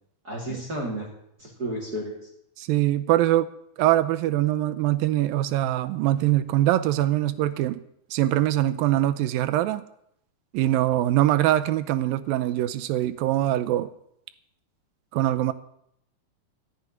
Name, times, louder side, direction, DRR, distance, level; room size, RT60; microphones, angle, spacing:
voice 1, 0.2-1.1 1.4-2.2, right 1 dB, 30° right, -1 dB, 2.8 m, -32 dB
voice 2, 2.6-3.5 3.8-7.8 8.1-9.8 10.5-13.9 15.1-15.5, right 14 dB, 80° right, 12 dB, 2.4 m, -23 dB
14.5 x 7.1 x 9.9 m, 0.73 s
omnidirectional pair, 4.2 m